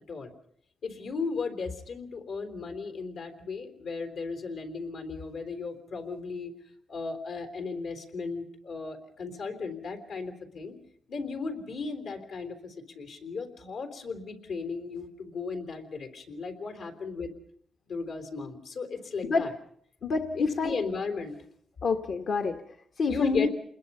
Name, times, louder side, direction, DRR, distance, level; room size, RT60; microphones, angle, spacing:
voice 1, 0.8-6.5 6.9-10.8 11.1-17.3 17.9-19.5 20.3-21.3 23.1-23.5, left 4 dB, 80° left, 6 dB, 3.8 m, -35 dB
voice 2, 20.0-20.8 21.8-22.6 23.0-23.5, left 4 dB, 65° left, 5 dB, 1.3 m, -27 dB
28.0 x 21.0 x 5.6 m, 0.66 s
cardioid pair, 90°, 0 cm